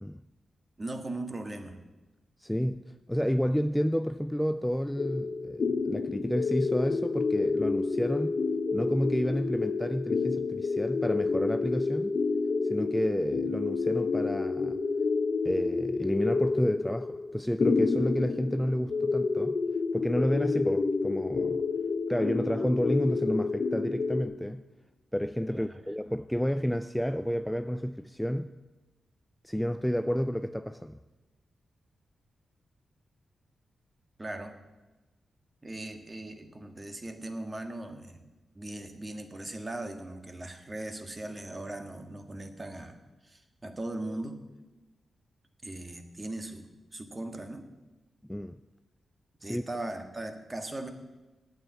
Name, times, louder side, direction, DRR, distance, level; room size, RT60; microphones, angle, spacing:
voice 1, 0.8-1.8 25.5-25.8 34.2-34.6 35.6-38.2 38.5-44.4 45.6-47.6 49.4-50.9, right 2 dB, 30° right, 1.5 m, -39 dB
voice 2, 2.4-2.8 3.1-8.4 8.7-12.2 12.6-14.8 15.4-19.6 19.9-21.6 22.1-24.6 25.1-28.5 29.4-31.0 48.2-48.6 49.4-49.6, equal, 5° left, 0.4 m, -30 dB
sound 1, 5.0-24.2, left 4 dB, 60° left, 0.8 m, -29 dB
9.0 x 7.9 x 8.2 m
cardioid pair, 55°, 0 cm